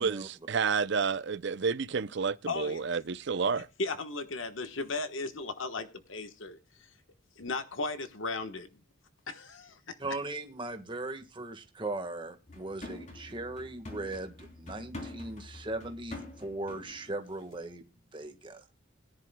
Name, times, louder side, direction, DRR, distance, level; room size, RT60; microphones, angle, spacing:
voice 1, 0.0-3.7, right 5 dB, 55° right, 0.5 m, -30 dB
voice 2, 2.5-2.9 3.6-6.9 7.4-8.7 9.3-10.0, left 3 dB, 70° left, 1.2 m, -36 dB
voice 3, 10.0-17.8 18.1-18.6, right 2 dB, 25° right, 1.5 m, -38 dB
sound 1, 12.5-17.1 17.4-17.5, left 2 dB, 35° left, 3.3 m, -46 dB
21.5 x 10.5 x 2.2 m
head